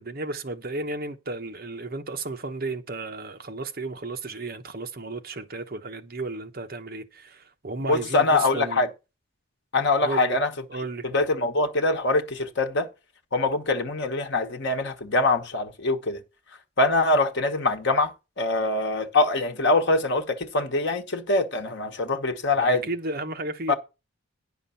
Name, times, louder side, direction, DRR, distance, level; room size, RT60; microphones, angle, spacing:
voice 1, 0.0-8.9 10.0-10.4 10.7-11.1 22.6-23.7, right 2 dB, 45° right, 1.0 m, -33 dB
voice 2, 7.8-8.9 9.7-10.5 11.0-12.9 13.3-16.2 16.8-22.9 23.7-23.8, left 2 dB, 55° left, 1.3 m, -24 dB
10.0 x 5.9 x 5.7 m
head